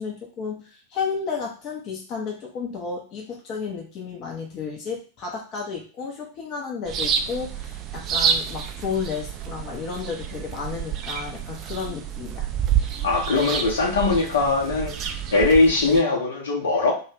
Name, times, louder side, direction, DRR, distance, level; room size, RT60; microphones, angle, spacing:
voice 1, 0.0-12.5, left 5 dB, 35° left, -1 dB, 0.7 m, -32 dB
sound 1, 6.9-16.0, right 8 dB, 35° right, 0.3 m, -28 dB
voice 2, 13.0-14.9 15.3-16.9, left 3 dB, 65° left, -1 dB, 0.8 m, -20 dB
2.3 x 2.3 x 3.3 m, 0.39 s
figure-of-eight pair, 90°, 0 cm